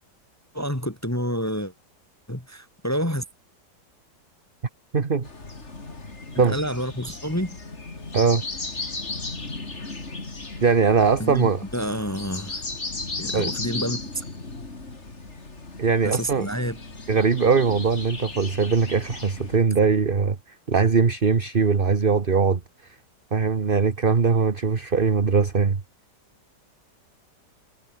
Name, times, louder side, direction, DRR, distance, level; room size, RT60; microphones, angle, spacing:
voice 1, 0.5-1.7 2.3-3.2 6.3-7.6 11.2-12.6 13.2-14.0 16.0-16.8, equal, 10° left, 3.0 m, -28 dB
voice 2, 4.9-5.3 6.4-6.6 8.1-8.4 10.6-11.6 13.3-13.5 15.8-16.5 17.1-20.4 20.7-22.6 23.3-25.8, right 5 dB, 35° right, 1.5 m, -21 dB
sound 1, 5.2-19.6, left 3 dB, 40° left, 3.7 m, -36 dB
omnidirectional pair, 1.9 m